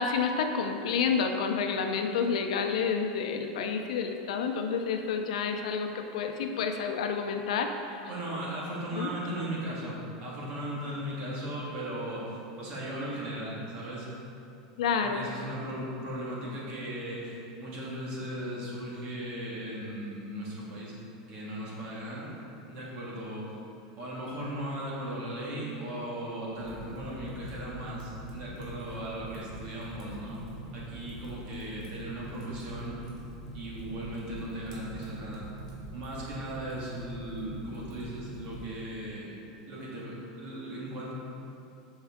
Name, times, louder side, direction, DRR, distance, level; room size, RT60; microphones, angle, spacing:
voice 1, 0.0-8.0 8.9-9.1 14.8-15.2, left 6 dB, 90° left, 5 dB, 0.7 m, -29 dB
voice 2, 8.1-14.1 15.0-20.9 21.3-22.4 22.7-23.6 24.0-30.4 30.7-33.1 33.5-35.5 35.9-39.3 39.7-41.1, right 1 dB, 40° right, -5 dB, 1.9 m, -37 dB
Fire, 26.6-38.7, right 1 dB, 80° right, 1.9 m, -44 dB
7.9 x 6.4 x 3.7 m, 2.7 s
supercardioid pair, 175°, 3 cm